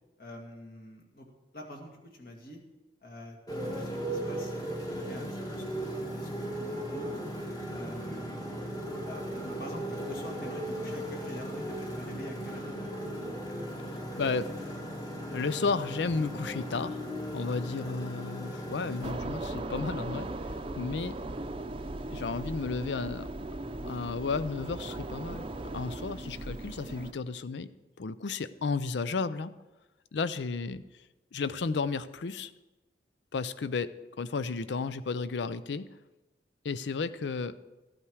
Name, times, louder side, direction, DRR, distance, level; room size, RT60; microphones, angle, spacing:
voice 1, 0.2-1.3 1.5-2.6 3.0-5.8 6.1-7.2 7.7-8.7 9.0-13.0, left 1 dB, 55° left, 1 dB, 2.1 m, -46 dB
Motorcycle, 3.5-19.1, right 1 dB, 20° left, 1.4 m, -37 dB
voice 2, 14.2-14.8 15.3-17.0 17.3-21.1 22.1-23.3 23.8-25.5 25.7-27.7 28.0-29.5 30.1-30.8 31.3-32.5 33.3-35.9 36.6-37.5, left 4 dB, 80° left, 15 dB, 0.5 m, -33 dB
sound 1, 19.0-27.1, right 2 dB, 30° right, 0.6 m, -38 dB
14.0 x 8.8 x 4.8 m, 1.1 s
head